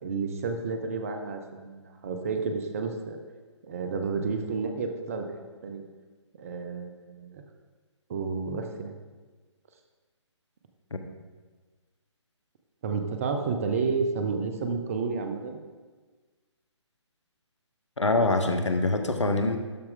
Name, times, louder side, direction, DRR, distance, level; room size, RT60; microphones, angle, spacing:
voice 1, 0.0-3.2 3.6-5.3 5.6-5.8 6.4-7.4 8.1-8.9 12.8-15.6, right 4 dB, 30° right, 6 dB, 0.6 m, -31 dB
voice 2, 18.0-19.6, left 2 dB, 75° left, 6 dB, 0.9 m, -24 dB
12.5 x 4.4 x 3.8 m, 1.4 s
figure-of-eight pair, 140°, 15 cm